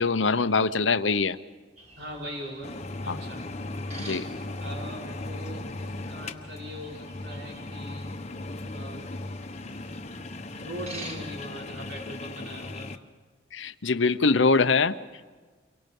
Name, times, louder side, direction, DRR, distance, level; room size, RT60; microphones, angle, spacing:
voice 1, 0.0-1.4 3.1-3.2 4.0-4.3 13.5-15.0, left 4 dB, 75° left, 12 dB, 0.9 m, -23 dB
sound 1, 1.8-12.1, right 1 dB, 40° right, 4.0 m, -49 dB
voice 2, 2.0-2.7 3.0-3.5 4.6-8.1 8.7-9.2 10.6-12.9, equal, 70° right, -2 dB, 5.4 m, -41 dB
sound 2, 2.6-13.0, left 2 dB, 35° left, 1.1 m, -37 dB
29.5 x 24.0 x 5.5 m, 1.4 s
head